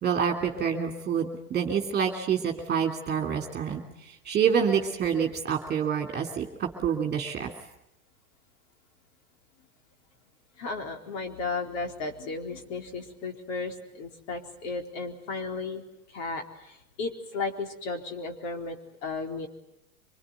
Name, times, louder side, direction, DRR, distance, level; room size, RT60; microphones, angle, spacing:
voice 1, 0.0-3.8 4.2-7.5, right 7 dB, 20° right, 3 dB, 3.1 m, -27 dB
voice 2, 10.6-15.8 16.1-18.8 19.0-19.5, left 3 dB, 55° left, 3 dB, 4.2 m, -34 dB
25.5 x 21.0 x 9.3 m, 0.82 s
hypercardioid pair, 120°, 44 cm